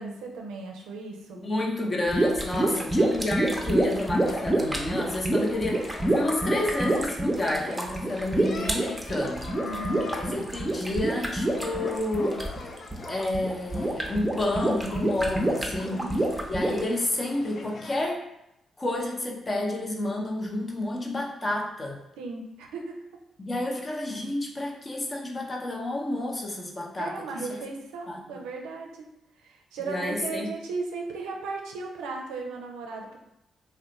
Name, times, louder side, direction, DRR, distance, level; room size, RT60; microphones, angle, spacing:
voice 1, 0.0-1.4 2.5-2.9 9.6-10.1 15.9-16.3 22.2-23.0 27.0-29.1 29.4-33.2, right 3 dB, 85° right, 1 dB, 0.4 m, -36 dB
voice 2, 1.4-9.5 10.2-12.4 13.1-16.0 16.5-18.2 18.8-22.0 23.4-27.1 28.1-28.3 29.9-30.5, left 1 dB, 35° left, 0 dB, 0.7 m, -30 dB
sound 1, 2.1-16.8, right 1 dB, 10° right, 0.6 m, -27 dB
sound 2, 2.4-18.0, left 3 dB, 60° left, 0.4 m, -42 dB
2.4 x 2.1 x 3.9 m, 0.85 s
supercardioid pair, 55°, 0 cm